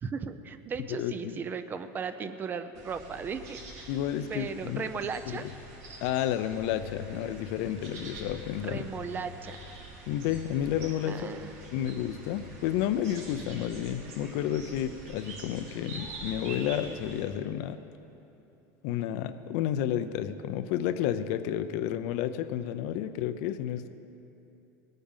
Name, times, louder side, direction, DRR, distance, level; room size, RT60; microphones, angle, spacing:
voice 1, 0.0-3.9 4.3-5.5 8.7-9.6 11.1-11.5, right 6 dB, 25° right, 11 dB, 0.6 m, -36 dB
voice 2, 0.9-1.4 3.9-4.9 5.3-5.5 6.0-8.8 10.1-11.3 11.7-17.8 18.8-23.9, left 10 dB, 70° left, 11 dB, 0.7 m, -31 dB
sound 1, 2.7-17.2, right 1 dB, 85° right, 3.5 m, -45 dB
19.5 x 9.0 x 5.6 m, 2.8 s
supercardioid pair, 140°, 8 cm